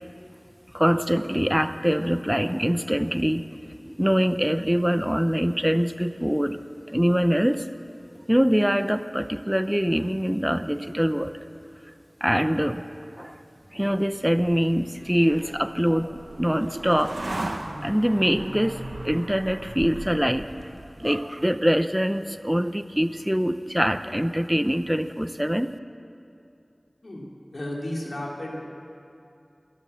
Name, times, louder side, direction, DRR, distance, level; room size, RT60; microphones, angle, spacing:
voice 1, 0.7-3.4 3.8-6.6 6.9-7.6 8.3-11.3 12.2-12.8 13.2-13.3 13.7-16.1 16.4-17.2 17.4-17.5 17.8-18.8 19.0-20.7 21.0-25.7, equal, 10° right, 10 dB, 0.7 m, -24 dB
sound 1, 13.9-21.3, right 2 dB, 65° right, 1.2 m, -37 dB
voice 2, 27.5-28.7, left 1 dB, 75° left, -3 dB, 3.3 m, -33 dB
26.5 x 14.0 x 7.1 m, 2.7 s
wide cardioid pair, 50°, 0 cm